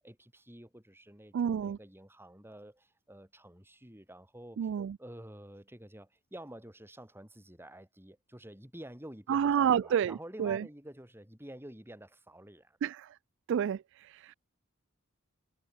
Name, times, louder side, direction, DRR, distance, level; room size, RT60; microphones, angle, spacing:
voice 1, 0.0-4.7 5.0-12.8, right 1 dB, 10° right, 5.0 m, -50 dB
voice 2, 1.3-1.8 4.6-5.0 9.3-10.6 12.8-13.1 13.5-14.3, right 8 dB, 60° right, 0.3 m, -29 dB
head